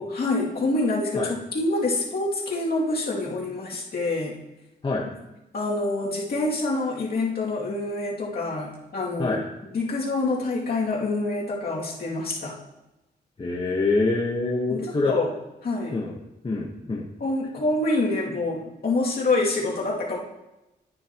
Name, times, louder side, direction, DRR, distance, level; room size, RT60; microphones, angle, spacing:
voice 1, 0.0-4.4 5.5-9.4 9.7-12.5 14.7-15.3 15.6-16.0 17.2-20.2, left 2 dB, 60° left, -4 dB, 2.5 m, -26 dB
voice 2, 13.4-15.1 15.9-16.2 16.4-17.1, left 3 dB, 30° left, -3 dB, 1.2 m, -25 dB
10.0 x 9.9 x 3.0 m, 0.95 s
wide cardioid pair, 110°, 18 cm